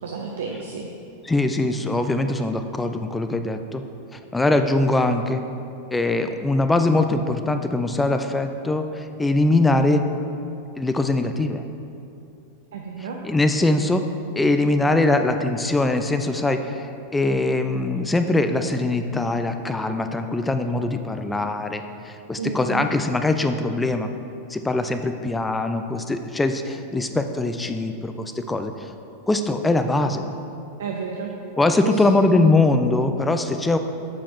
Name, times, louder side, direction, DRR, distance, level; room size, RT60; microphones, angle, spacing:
voice 1, 0.0-0.9 12.7-13.2 22.4-22.9 30.8-31.3 31.8-32.2, right 5 dB, 60° right, 1 dB, 0.6 m, -31 dB
voice 2, 1.3-3.8 4.3-5.4 5.9-10.1 10.8-11.6 13.2-14.0 14.4-24.1 24.5-28.7 29.3-30.2 31.6-33.8, left 2 dB, 10° left, 7 dB, 0.5 m, -22 dB
7.3 x 7.1 x 4.6 m, 2.7 s
figure-of-eight pair, 90°, 0 cm